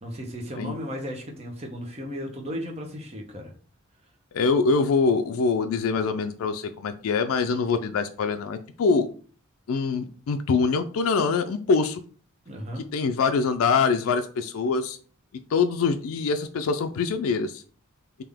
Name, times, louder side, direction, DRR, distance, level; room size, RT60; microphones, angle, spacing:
voice 1, 0.0-3.5 12.5-12.8, equal, 30° right, 1 dB, 0.8 m, -35 dB
voice 2, 4.3-9.1 9.7-12.0 12.9-15.0 15.5-17.6, left 4 dB, 80° left, 7 dB, 0.4 m, -24 dB
3.6 x 2.7 x 3.4 m, 0.41 s
head